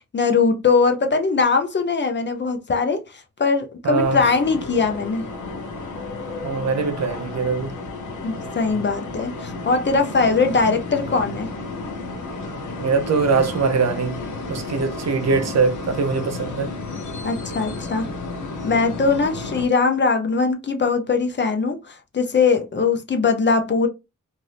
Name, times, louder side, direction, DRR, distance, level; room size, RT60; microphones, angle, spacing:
voice 1, 0.1-5.3 8.2-11.5 17.2-18.1 18.6-23.9, left 4 dB, 40° left, 0.5 m, -21 dB
voice 2, 3.8-4.2 6.4-7.7 12.8-14.2 14.5-16.7, right 4 dB, 60° right, 0.6 m, -22 dB
sound 1, 4.0-19.7, left 3 dB, 80° left, 0.8 m, -32 dB
2.6 x 2.6 x 3.2 m
wide cardioid pair, 140°, 30 cm